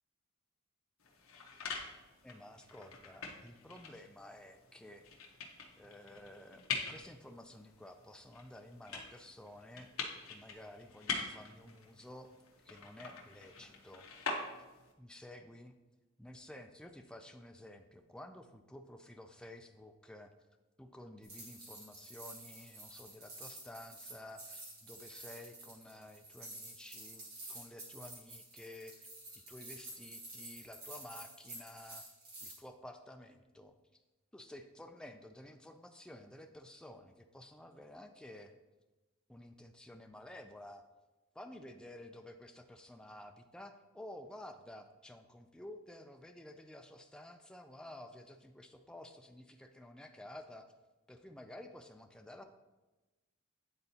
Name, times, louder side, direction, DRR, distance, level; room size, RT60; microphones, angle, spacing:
sound 1, 1.0-14.9, left 4 dB, 65° left, 0.9 m, -45 dB
voice 1, 2.2-5.1 5.8-12.3 12.6-14.1 15.0-15.7 16.2-20.3 20.8-29.1 29.5-32.0 32.4-34.0 34.3-38.5 39.3-40.8 41.3-50.7 51.1-52.4, left 1 dB, 5° left, 5 dB, 0.3 m, -52 dB
sound 2, 21.2-32.6, right 1 dB, 45° right, 1.7 m, -50 dB
9.7 x 3.9 x 2.8 m, 1.1 s
head